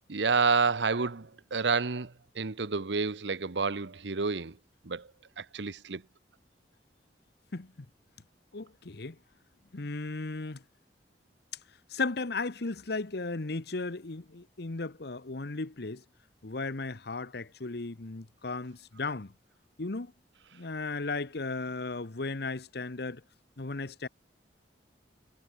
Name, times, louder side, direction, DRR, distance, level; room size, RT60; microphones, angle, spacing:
voice 1, 0.1-4.6 4.8-5.1 5.4-6.0, right 4 dB, 80° right, 0.9 m, -29 dB
voice 2, 7.5-7.9 8.5-9.2 9.7-10.6 11.9-16.0 16.4-19.3 19.8-20.1 20.5-23.2 23.6-24.1, left 3 dB, 65° left, 1.1 m, -35 dB
head